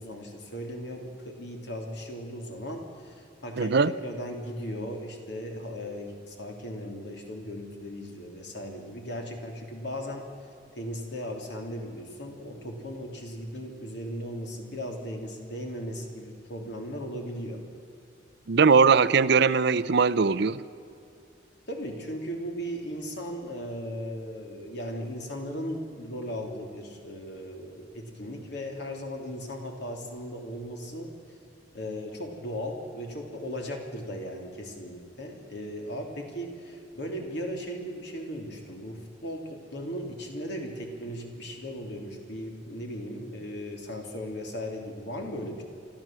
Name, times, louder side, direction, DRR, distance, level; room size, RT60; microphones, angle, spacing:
voice 1, 0.0-3.8 4.0-10.2 10.7-17.6 21.7-31.1 31.7-45.6, equal, 70° left, 2 dB, 3.2 m, -37 dB
voice 2, 3.6-3.9 18.5-20.6, right 5 dB, 65° right, 16 dB, 0.6 m, -20 dB
28.5 x 12.5 x 7.6 m, 2.6 s
head